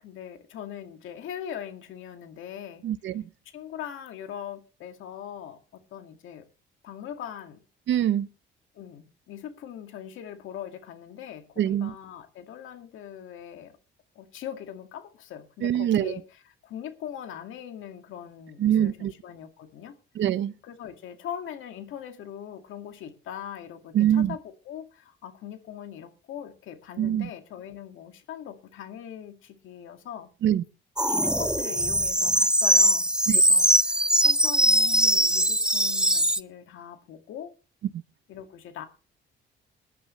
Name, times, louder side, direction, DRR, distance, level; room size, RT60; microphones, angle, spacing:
voice 1, 0.0-2.8 3.5-6.4 6.8-7.6 8.7-13.7 14.2-19.9 20.6-30.3 31.0-37.5 38.3-38.9, left 9 dB, 85° left, 2.2 m, -41 dB
voice 2, 2.8-3.2 7.9-8.3 11.6-11.9 15.6-16.1 18.6-19.1 20.2-20.5 23.9-24.3 27.0-27.3 30.4-30.6 33.3-33.4, right 11 dB, 70° right, 0.8 m, -24 dB
sound 1, 31.0-36.4, right 1 dB, 5° right, 0.5 m, -21 dB
20.5 x 11.0 x 3.3 m
cardioid pair, 90°, 20 cm